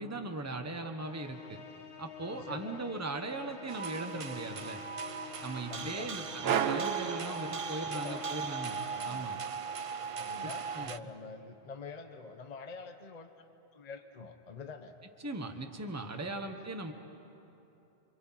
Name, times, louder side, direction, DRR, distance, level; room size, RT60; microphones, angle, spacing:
voice 1, 0.0-1.6 2.0-4.8 5.4-9.4 10.7-10.9 15.2-16.9, right 2 dB, 15° right, 4 dB, 1.2 m, -39 dB
Musical instrument, 1.0-9.5, left 6 dB, 60° left, 1.2 m, -49 dB
voice 2, 2.3-2.8 5.4-6.2 7.9-8.3 8.9-9.4 10.2-13.3 13.7-15.0 16.2-16.5, left 4 dB, 40° left, 7 dB, 1.0 m, -46 dB
sound 1, 3.7-11.0, right 5 dB, 40° right, 0.5 m, -39 dB
sound 2, 6.4-8.2, right 9 dB, 65° right, 0.9 m, -32 dB
28.0 x 25.5 x 5.8 m, 3.0 s
omnidirectional pair, 1.2 m